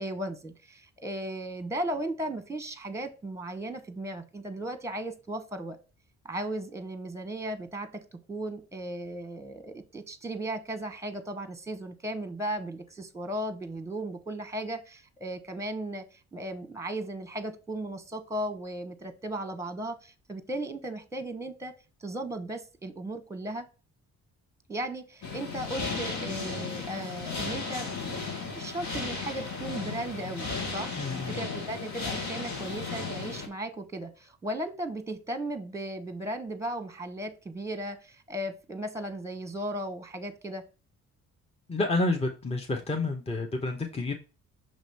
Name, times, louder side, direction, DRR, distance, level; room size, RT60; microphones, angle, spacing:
voice 1, 0.0-5.8 6.2-16.0 16.3-21.7 22.0-23.6 24.7-28.2 28.5-30.9 31.3-40.6, right 1 dB, 10° right, 9 dB, 1.1 m, -36 dB
sound 1, 25.2-33.5, left 4 dB, 70° left, 2.0 m, -35 dB
voice 2, 30.9-31.4 41.7-44.1, left 2 dB, 20° left, 4 dB, 1.0 m, -29 dB
6.3 x 2.9 x 5.4 m, 0.33 s
cardioid pair, 90°, 30 cm